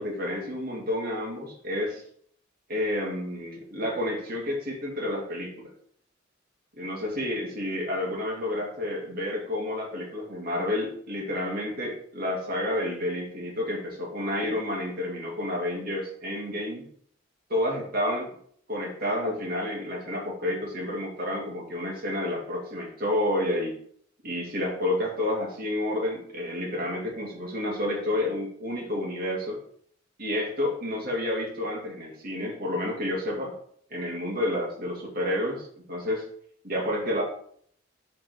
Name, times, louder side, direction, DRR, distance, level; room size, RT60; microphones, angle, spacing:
voice 1, 0.0-2.0 2.7-5.7 6.8-16.8 17.5-18.2 18.7-23.8 24.2-29.6 30.2-33.5 33.9-36.3 36.6-37.2, left 1 dB, 50° right, -1 dB, 2.3 m, -30 dB
6.0 x 4.3 x 6.0 m, 0.62 s
head